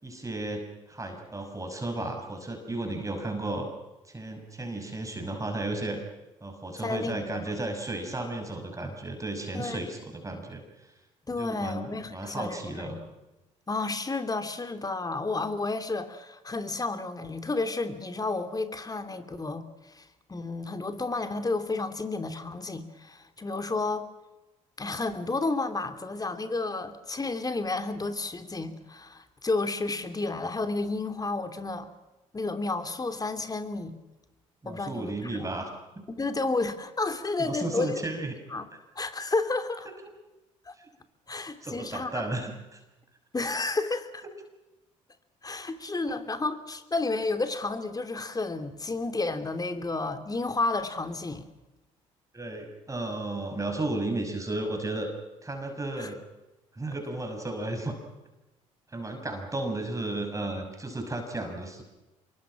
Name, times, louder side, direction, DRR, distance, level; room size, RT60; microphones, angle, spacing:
voice 1, 0.0-3.7 4.1-6.0 6.4-10.9 11.4-13.0 34.6-35.7 36.0-36.1 37.4-38.3 40.8-40.9 41.6-42.8 46.1-46.2 52.3-55.1 55.4-56.2 56.7-58.0 58.9-61.8, right 2 dB, 20° right, 4 dB, 5.9 m, -34 dB
voice 2, 6.8-7.4 9.5-9.8 11.3-13.0 13.7-24.1 24.8-31.9 32.3-34.0 34.6-35.5 36.1-38.0 38.5-38.7 38.9-39.9 40.7-40.8 41.3-42.1 43.3-44.2 45.4-51.5 56.0-56.1, left 3 dB, 25° left, 9 dB, 2.9 m, -31 dB
26.0 x 23.0 x 6.3 m, 1.0 s
hypercardioid pair, 55°, 16 cm